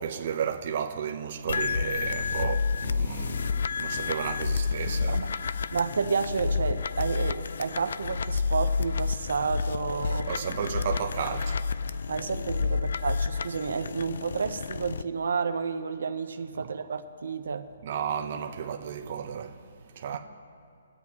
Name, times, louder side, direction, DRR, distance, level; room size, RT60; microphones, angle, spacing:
voice 1, 0.0-5.2 10.3-11.6 17.8-19.6 20.0-20.2, right 7 dB, 40° right, 0.8 m, -33 dB
sound 1, 1.5-15.0, left 5 dB, 65° left, 0.3 m, -30 dB
voice 2, 4.9-5.3 5.7-10.3 12.1-17.6 20.1-20.2, right 5 dB, 80° right, 0.7 m, -31 dB
22.0 x 8.1 x 2.9 m
hypercardioid pair, 170°, 0 cm